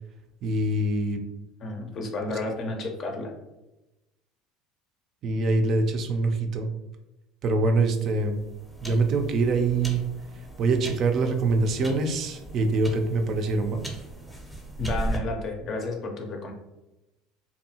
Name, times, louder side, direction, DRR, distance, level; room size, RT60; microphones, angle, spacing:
voice 1, 0.4-1.2 5.2-6.7 7.4-8.4 8.8-10.0 10.6-13.8, right 3 dB, 50° right, 6 dB, 0.4 m, -24 dB
voice 2, 1.6-3.3 14.8-16.5, left 2 dB, 45° left, 3 dB, 0.5 m, -31 dB
sound 1, 7.8-15.2, right 1 dB, ahead, 0.6 m, -38 dB
2.6 x 2.3 x 2.7 m, 1.0 s
supercardioid pair, 90°, 0 cm